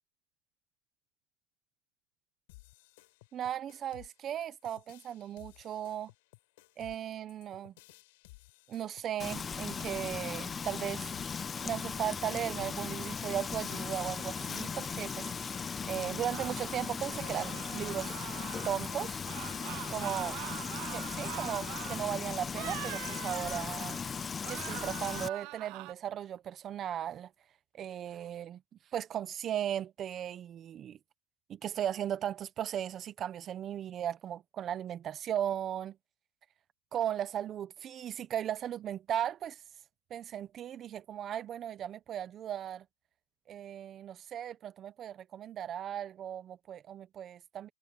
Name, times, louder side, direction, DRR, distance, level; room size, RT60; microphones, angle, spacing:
sound 1, 2.5-14.1, left 23 dB, 65° left, 5.6 m, -58 dB
voice 1, 3.3-6.1 6.8-7.7 8.7-11.0 11.6-18.1 18.6-19.2 19.9-20.4 20.9-24.0 24.5-27.3 27.7-28.6 28.9-31.0 31.5-36.0 36.9-39.6 40.1-42.8 43.5-47.7, right 10 dB, 30° right, 1.2 m, -37 dB
Frying (food), 9.2-25.3, left 6 dB, 20° left, 0.7 m, -38 dB
sound 2, 16.3-18.9 19.2-22.1 22.5-24.1 24.4-25.9, right 23 dB, 50° right, 0.5 m, -44 dB
supercardioid pair, 140°, 0 cm